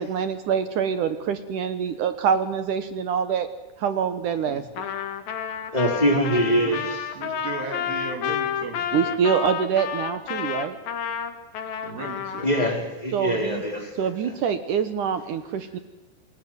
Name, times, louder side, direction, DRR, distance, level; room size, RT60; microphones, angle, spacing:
voice 1, 0.0-3.5 3.8-4.9 8.9-10.8 13.1-13.6 14.0-15.8, right 7 dB, 65° right, 10 dB, 2.3 m, -25 dB
Trumpet, 4.8-12.8, left 8 dB, 65° left, 3.6 m, -30 dB
voice 2, 5.7-6.8 12.4-14.1, equal, 10° left, 2 dB, 4.1 m, -23 dB
voice 3, 6.3-9.2 11.8-12.7, right 4 dB, 85° right, 4 dB, 5.7 m, -37 dB
27.5 x 20.0 x 7.9 m, 1.1 s
omnidirectional pair, 4.7 m